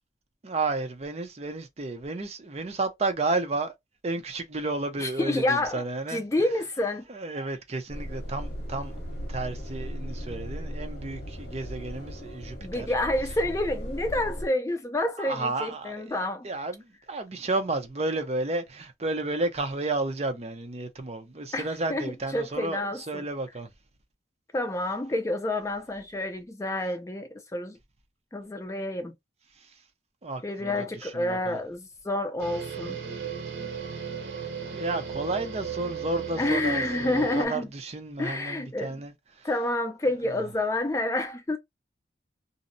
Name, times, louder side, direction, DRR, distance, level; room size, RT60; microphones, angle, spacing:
voice 1, 0.4-3.7 4.0-6.2 7.1-9.0 9.3-12.9 15.2-23.7 29.6-29.7 30.2-31.6 34.7-39.5, right 2 dB, 35° right, 0.5 m, -32 dB
voice 2, 5.0-7.0 12.6-16.5 21.5-23.2 24.5-27.8 28.3-29.1 30.4-33.0 36.4-37.7 38.2-38.9 39.4-41.6, left 1 dB, 15° left, 0.4 m, -29 dB
sound 1, 7.9-14.5, equal, 60° left, 0.9 m, -37 dB
sound 2, 32.4-37.5, right 7 dB, 85° right, 0.7 m, -36 dB
2.7 x 2.0 x 2.5 m
head